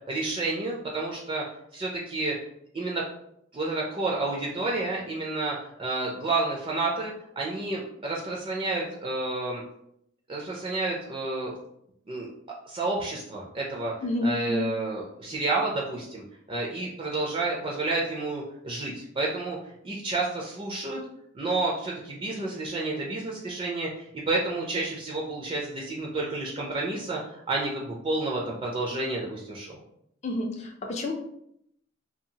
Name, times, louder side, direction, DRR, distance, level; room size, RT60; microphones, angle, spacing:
voice 1, 0.1-1.4 1.7-2.3 2.7-3.0 3.5-9.6 10.3-11.5 12.1-12.3 12.7-13.9 14.2-19.6 19.8-21.0 21.3-29.8, right 2 dB, 30° right, -2 dB, 0.4 m, -30 dB
voice 2, 14.0-14.6 30.2-31.1, left 1 dB, 35° left, 2 dB, 0.4 m, -29 dB
2.7 x 2.3 x 2.7 m, 0.74 s
head